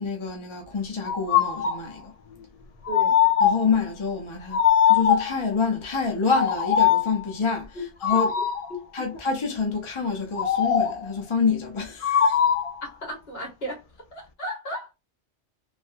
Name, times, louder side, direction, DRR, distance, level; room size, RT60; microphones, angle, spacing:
voice 1, 0.0-2.1 3.4-8.3 8.9-12.3, left 5 dB, 30° left, 0.6 m, -27 dB
sound 1, 1.1-1.9 2.9-3.8 4.5-5.4 6.3-7.2 8.0-8.7 10.4-11.1 12.0-12.8, left 9 dB, 75° left, 0.3 m, -21 dB
voice 2, 2.9-3.2 8.7-8.8 12.8-13.8 14.1-14.9, equal, 55° left, 1.7 m, -34 dB
3.4 x 2.2 x 2.6 m
omnidirectional pair, 1.2 m